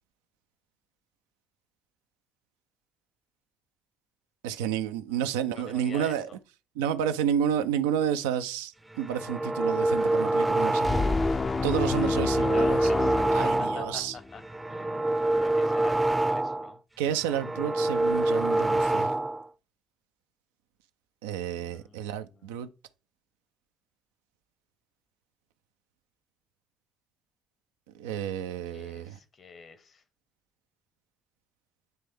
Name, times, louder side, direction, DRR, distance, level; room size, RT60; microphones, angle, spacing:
voice 1, 4.4-6.3 6.8-10.9 11.6-12.8 13.3-14.2 17.0-19.2 21.2-22.7 27.9-29.2, right 9 dB, 75° right, 0.4 m, -30 dB
voice 2, 5.1-6.4 11.6-14.4 14.7-16.8 21.6-22.6 28.7-30.0, left 5 dB, 50° left, 1.0 m, -46 dB
sound 1, 8.9-11.3 11.7-14.0 14.4-16.7 17.1-19.5, right 2 dB, 10° right, 0.6 m, -27 dB
sound 2, 10.8-14.3, left 3 dB, 30° left, 0.5 m, -28 dB
9.1 x 3.3 x 3.4 m
figure-of-eight pair, 45°, 0 cm